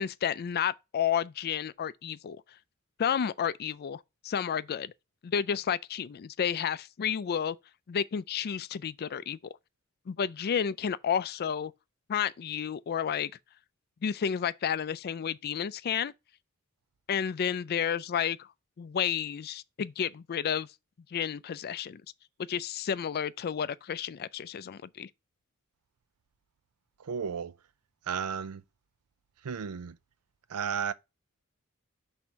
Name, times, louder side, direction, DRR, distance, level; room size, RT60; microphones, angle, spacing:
voice 1, 0.0-2.4 3.0-4.9 5.2-7.6 7.9-9.4 10.1-11.7 12.1-13.3 14.0-16.1 17.1-18.5 18.8-20.7 21.1-22.0 22.5-25.1, left 8 dB, 45° left, 0.4 m, -31 dB
voice 2, 27.0-27.5 28.1-28.6 29.4-30.0 30.5-30.9, right 7 dB, 85° right, 0.5 m, -33 dB
6.1 x 3.6 x 5.4 m
head